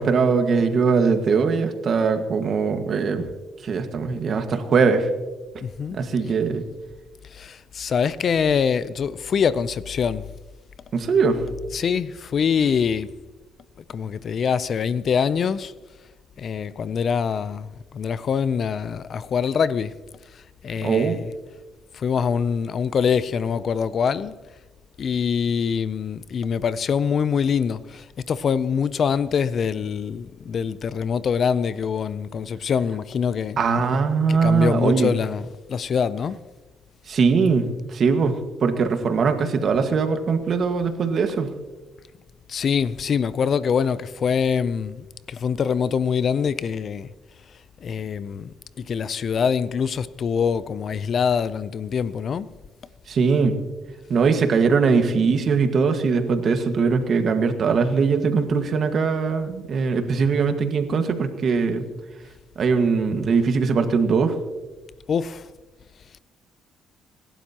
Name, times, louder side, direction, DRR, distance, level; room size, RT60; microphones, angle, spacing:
voice 1, 0.0-3.2 3.6-5.1 5.9-6.6 10.9-11.4 20.8-21.1 33.6-35.1 37.1-41.5 53.1-53.5 54.1-61.9 62.5-64.4, right 5 dB, 50° right, 1.7 m, -21 dB
voice 2, 5.6-6.0 7.3-10.3 11.7-13.2 13.9-15.7 16.4-20.0 20.3-21.3 21.9-24.4 25.0-33.6 34.3-36.4 42.5-47.1 47.8-52.5 65.1-65.5, left 6 dB, 50° left, 0.5 m, -24 dB
26.0 x 12.0 x 2.9 m
cardioid pair, 95°, 0 cm